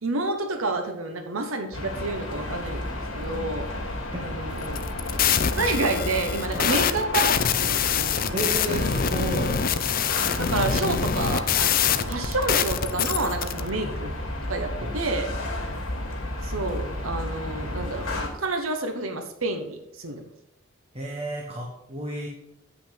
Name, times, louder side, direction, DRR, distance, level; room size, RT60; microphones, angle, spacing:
voice 1, 0.0-2.8 3.1-3.7 4.2-4.8 5.6-8.3 10.3-14.1 14.5-15.3 16.4-18.1 18.3-20.2, right 3 dB, 75° right, 6 dB, 1.1 m, -29 dB
sound 1, 1.7-18.3, left 1 dB, 65° left, 2.7 m, -33 dB
sound 2, 4.6-13.6, left 8 dB, 40° left, 0.5 m, -25 dB
voice 2, 8.3-9.6 11.9-12.0 14.8-15.1 15.7-16.0 20.9-22.3, right 2 dB, 30° right, -1 dB, 1.3 m, -32 dB
8.3 x 5.9 x 5.8 m, 0.84 s
head